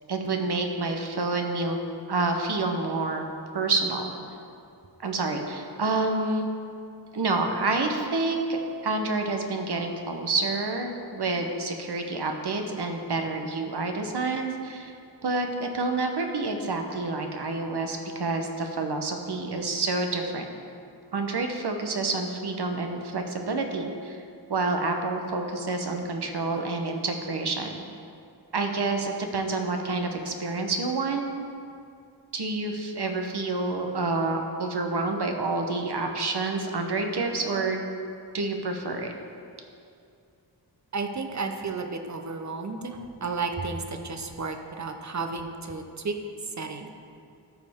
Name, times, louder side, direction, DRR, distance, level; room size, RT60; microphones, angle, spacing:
voice 1, 0.1-1.8 2.1-3.3 3.5-4.1 5.0-6.5 7.1-8.6 8.8-14.9 15.2-20.5 21.1-24.2 24.5-27.8 28.5-31.2 32.3-37.8 38.3-39.1, right 3 dB, 65° right, 4 dB, 1.0 m, -28 dB
voice 2, 40.9-46.2 46.6-46.9, right 4 dB, 40° right, 5 dB, 0.8 m, -33 dB
13.5 x 5.3 x 3.6 m, 2.5 s
wide cardioid pair, 75°, 43 cm